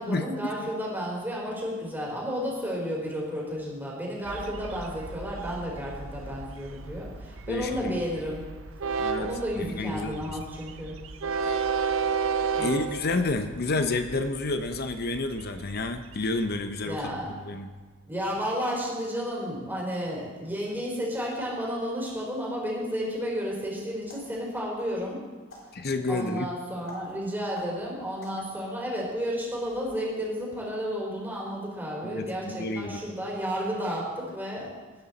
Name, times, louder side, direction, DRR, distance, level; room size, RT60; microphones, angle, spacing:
voice 1, 0.0-8.4 9.2-11.0 12.5-12.8 16.8-17.3 18.1-25.2 26.1-34.7, equal, 10° right, -4 dB, 3.8 m, -32 dB
Train, 4.2-17.2, right 5 dB, 85° right, 0.7 m, -34 dB
voice 2, 7.5-8.0 9.0-9.3 9.6-10.4 11.4-11.7 12.6-17.7 25.7-26.5 32.0-33.0, left 3 dB, 50° left, 8 dB, 0.8 m, -30 dB
sound 1, 23.9-30.1, left 1 dB, 70° left, 4.0 m, -51 dB
19.5 x 9.9 x 4.1 m, 1.4 s
head